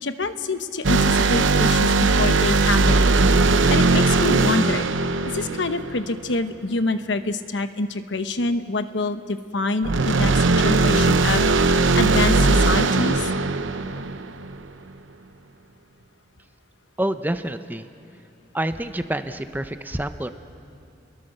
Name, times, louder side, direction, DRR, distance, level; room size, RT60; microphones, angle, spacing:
voice 1, 0.0-3.0 3.5-4.9 5.2-13.3, left 3 dB, 75° left, 10 dB, 1.0 m, -26 dB
sound 1, 0.8-6.3 9.8-14.6, right 3 dB, 90° right, 0.8 m, -19 dB
voice 2, 17.0-17.9 18.5-20.3, right 1 dB, 10° right, 9 dB, 0.7 m, -27 dB
30.0 x 22.5 x 6.6 m, 2.6 s
head